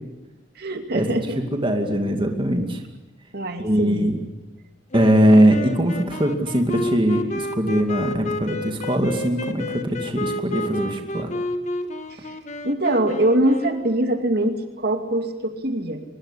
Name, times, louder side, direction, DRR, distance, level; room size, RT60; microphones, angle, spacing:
voice 1, 0.6-1.4 3.3-4.1 12.1-12.4 12.6-16.0, right 1 dB, 55° right, 6 dB, 2.5 m, -23 dB
voice 2, 1.4-2.8 3.6-4.2 4.9-11.3, equal, 25° right, 4 dB, 2.4 m, -21 dB
sound 1, 4.9-14.1, left 1 dB, 40° left, 1.7 m, -31 dB
24.5 x 21.5 x 10.0 m, 1.1 s
head